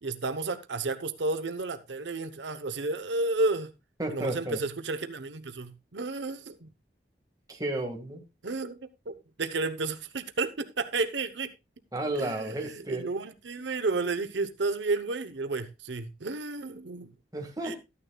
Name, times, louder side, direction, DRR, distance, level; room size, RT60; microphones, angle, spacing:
voice 1, 0.0-3.7 4.1-6.7 8.4-8.8 9.1-11.5 12.2-17.1 17.6-17.7, right 3 dB, 90° right, 1.0 m, -32 dB
voice 2, 4.0-4.6 7.5-8.2 11.9-13.1 17.3-17.8, right 1 dB, 20° right, 1.8 m, -32 dB
13.5 x 9.7 x 2.3 m
head